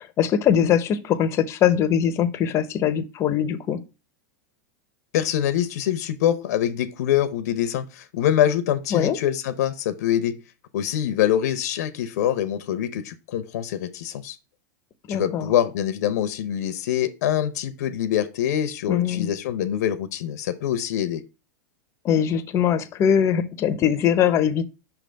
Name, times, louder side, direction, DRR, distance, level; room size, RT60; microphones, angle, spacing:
voice 1, 0.0-3.8 8.9-9.2 15.1-15.5 18.9-19.3 22.0-24.6, left 9 dB, 30° left, 0.7 m, -21 dB
voice 2, 5.1-10.4 10.7-14.4 15.1-21.2, left 10 dB, 70° left, 0.6 m, -24 dB
5.9 x 3.4 x 5.0 m
supercardioid pair, 135°, 9 cm